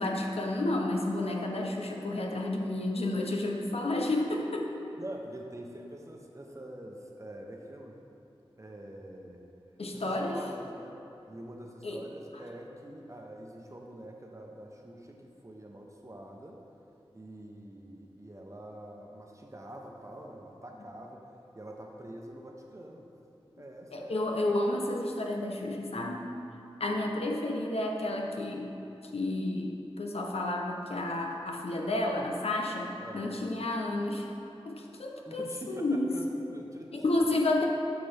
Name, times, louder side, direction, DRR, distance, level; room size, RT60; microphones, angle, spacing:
voice 1, 0.0-4.7 9.8-10.4 11.8-12.0 23.9-26.3 26.8-28.7 29.1-34.3 34.7-36.4 36.9-37.6, left 2 dB, 80° left, 1 dB, 0.8 m, -31 dB
voice 2, 5.0-8.0 8.6-9.5 9.9-11.0 11.3-16.6 17.1-21.2 21.5-23.1 23.6-24.2 33.0-33.4 35.3-37.0, right 1 dB, 30° right, 1 dB, 0.9 m, -45 dB
9.4 x 5.9 x 3.5 m, 2.7 s
wide cardioid pair, 55°, 10 cm